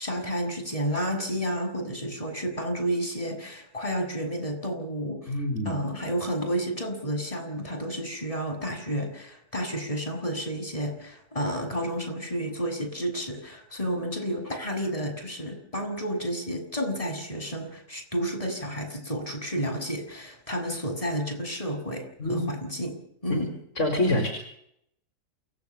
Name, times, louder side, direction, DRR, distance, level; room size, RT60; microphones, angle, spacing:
voice 1, 0.0-22.9 23.2-23.5, equal, 20° left, 3 dB, 7.5 m, -31 dB
voice 2, 5.3-5.8 22.2-22.4 23.3-23.4 23.8-24.3, left 1 dB, 55° left, 4 dB, 4.8 m, -25 dB
29.0 x 17.5 x 7.4 m, 0.71 s
omnidirectional pair, 1.6 m